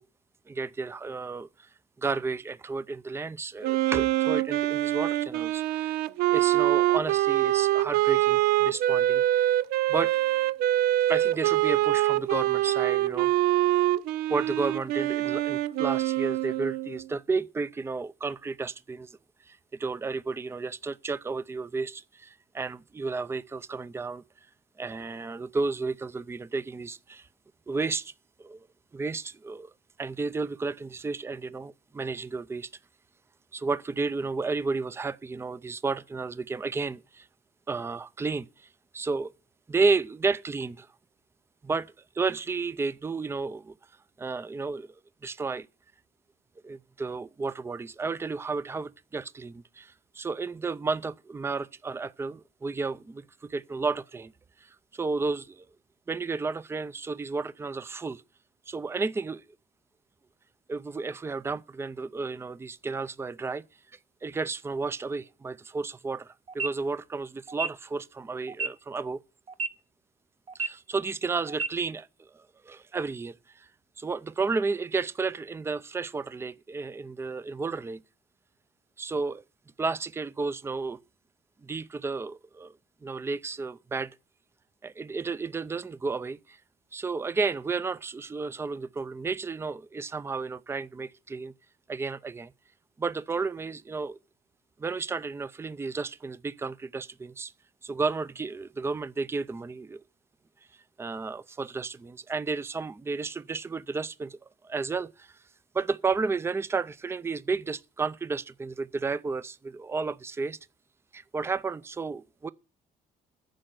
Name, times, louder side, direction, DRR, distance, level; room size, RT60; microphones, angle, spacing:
voice 1, 0.5-1.7 2.0-6.0 6.3-9.6 9.9-10.1 11.1-13.4 14.3-19.2 19.5-24.2 24.8-27.3 27.7-28.1 28.4-28.7 28.9-29.7 30.0-32.7 33.5-37.3 37.7-38.7 38.9-39.3 39.7-40.9 41.6-43.7 44.2-45.0 45.2-45.7 46.6-54.3 54.6-55.7 56.1-58.2 58.7-59.4 60.7-63.6 64.2-69.2 70.5-73.7 74.0-78.0 79.0-79.4 79.8-81.0 81.6-82.7 83.0-84.1 84.8-86.6 86.9-91.5 91.9-92.5 93.0-94.2 94.8-97.5 97.8-100.0 101.0-104.4 104.6-105.3 105.7-110.6 111.1-112.5, right 4 dB, 15° right, 0.5 m, -32 dB
Wind instrument woodwind instrument, 3.6-17.0, right 15 dB, 90° right, 0.5 m, -25 dB
sound 1, 66.5-66.7 67.5-67.7 68.5-68.7 69.5-69.7 70.5-70.7 71.5-71.7, right 4 dB, 40° right, 0.9 m, -30 dB
10.5 x 6.5 x 7.9 m
cardioid pair, 95°, 16 cm